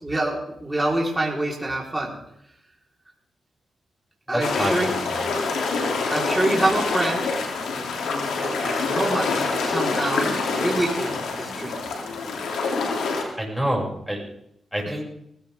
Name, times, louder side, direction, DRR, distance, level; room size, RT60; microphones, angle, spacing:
voice 1, 0.0-2.2 4.3-4.9 6.1-7.3 8.4-11.9, right 2 dB, 15° right, -2 dB, 4.2 m, -26 dB
voice 2, 4.3-4.8 5.1-5.3 13.4-14.2 14.7-15.0, equal, ahead, -3 dB, 6.8 m, -26 dB
sound 1, 4.4-13.2, left 4 dB, 90° left, 2.9 m, -26 dB
20.0 x 16.0 x 3.7 m, 0.75 s
cardioid pair, 65°, 0 cm